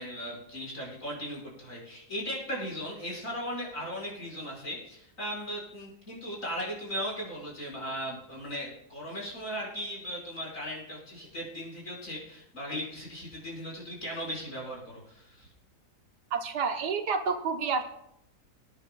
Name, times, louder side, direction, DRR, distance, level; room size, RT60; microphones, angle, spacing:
voice 1, 0.0-15.5, equal, 50° left, -4 dB, 5.7 m, -37 dB
voice 2, 16.3-17.8, right 5 dB, 85° right, 6 dB, 1.7 m, -29 dB
26.0 x 9.8 x 2.3 m, 0.77 s
omnidirectional pair, 1.7 m